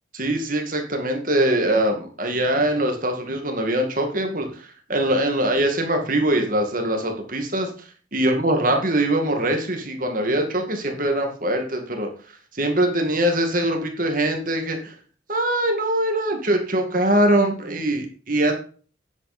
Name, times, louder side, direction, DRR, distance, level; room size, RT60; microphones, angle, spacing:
voice 1, 0.2-4.5 4.9-7.7 8.1-12.1 12.6-14.8 15.3-18.5, right 1 dB, 45° right, 3 dB, 2.2 m, -22 dB
9.9 x 8.5 x 4.3 m, 0.40 s
head